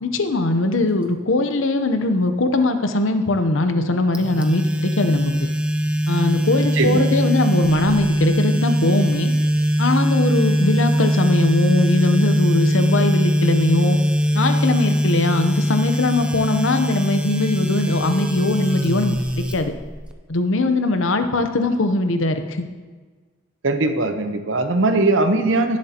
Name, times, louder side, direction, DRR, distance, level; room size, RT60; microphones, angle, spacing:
voice 1, 0.0-5.5 6.1-9.3 9.8-14.0 14.3-19.7 20.3-22.7, left 2 dB, 70° left, 7 dB, 0.8 m, -21 dB
sound 1, 4.1-20.1, equal, 5° right, 0.5 m, -21 dB
voice 2, 6.7-7.1 20.6-20.7 23.6-25.8, right 2 dB, 65° right, 7 dB, 0.9 m, -20 dB
18.0 x 7.4 x 2.9 m, 1.4 s
head